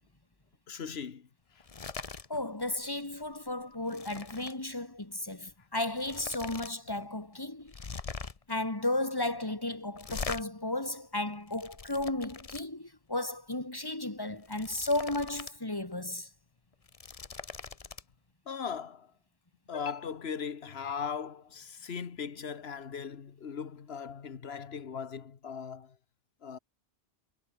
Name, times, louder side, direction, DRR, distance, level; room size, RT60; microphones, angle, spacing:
voice 1, 0.7-1.3 1.5-1.6 7.0-7.1 10.1-10.3 18.5-19.1 19.7-25.9 26.4-26.6, left 6 dB, 75° left, 1.5 m, -39 dB
sound 1, 1.6-2.3 2.6-2.9 3.2-4.6 5.5-5.6 5.9-6.7 7.0-7.1 7.7-8.5 9.9-10.4 11.2-12.6 14.3-15.6 15.9-16.0 16.7-18.0, left 4 dB, 35° left, 1.1 m, -42 dB
voice 2, 2.3-7.7 8.5-16.3, left 2 dB, 20° left, 2.4 m, -34 dB
omnidirectional pair, 1.1 m